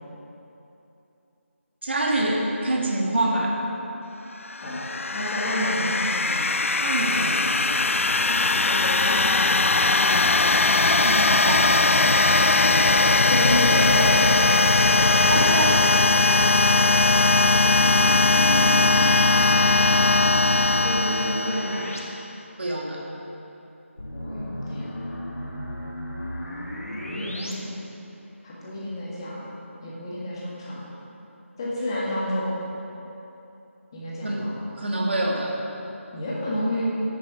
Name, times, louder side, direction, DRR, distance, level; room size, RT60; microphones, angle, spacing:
voice 1, 1.8-3.6 6.8-7.5 11.0-11.9 15.3-15.8 22.6-23.0 34.2-35.6, right 1 dB, 55° right, -2 dB, 1.8 m, -26 dB
sound 1, 4.5-22.1, left 3 dB, 70° left, 0.5 m, -20 dB
voice 2, 5.1-6.4 8.6-10.4 13.2-14.4 20.8-21.8 24.1-24.9 27.0-27.7 28.4-29.4 29.8-30.8 31.6-32.5 33.9-34.5 36.1-36.8, left 1 dB, 20° left, -7 dB, 1.7 m, -30 dB
sound 2, 12.6-15.7 17.1-22.0 22.3-22.4 24.0-27.5, equal, 90° left, 1.9 m, -34 dB
10.0 x 9.5 x 4.9 m, 2.9 s
figure-of-eight pair, 170°, 7 cm